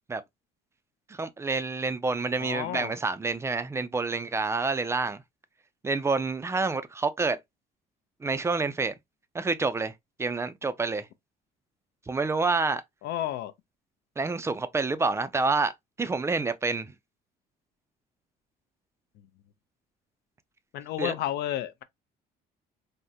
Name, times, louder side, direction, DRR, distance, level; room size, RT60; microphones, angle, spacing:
voice 1, 1.1-5.2 5.8-7.4 8.2-8.9 9.3-9.9 10.2-11.1 12.1-12.8 14.2-15.7 16.0-16.9 21.0-21.1, right 3 dB, 15° right, 0.3 m, -28 dB
voice 2, 2.4-3.0 13.0-13.5 20.7-21.8, left 12 dB, 75° left, 0.5 m, -31 dB
3.6 x 2.0 x 2.6 m
cardioid pair, 110°, 17 cm